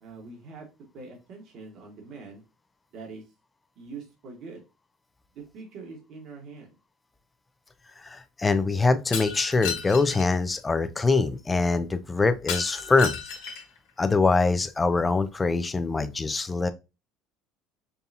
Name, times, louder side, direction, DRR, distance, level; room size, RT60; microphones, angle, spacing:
voice 1, 0.0-0.7 0.9-2.4 2.9-3.2 3.8-4.6 5.3-6.7, right 4 dB, 60° right, 1.5 m, -43 dB
voice 2, 8.0-13.2 14.0-16.7, left 3 dB, 20° left, 0.5 m, -24 dB
Shatter, 9.1-10.3 12.5-13.8, left 6 dB, 80° left, 1.2 m, -33 dB
5.4 x 2.3 x 2.8 m
supercardioid pair, 95°, 0 cm